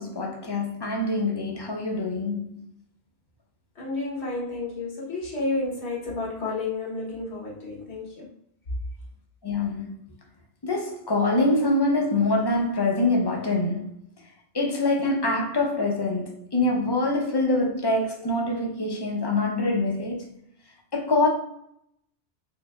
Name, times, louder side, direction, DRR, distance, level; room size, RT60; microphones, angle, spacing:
voice 1, 0.0-2.6 9.4-9.9 10.6-13.9 14.5-20.3 20.9-21.3, left 2 dB, 30° left, 0.6 m, -25 dB
voice 2, 3.8-8.3, left 3 dB, 80° left, 1.4 m, -31 dB
4.6 x 2.7 x 2.3 m
omnidirectional pair, 1.1 m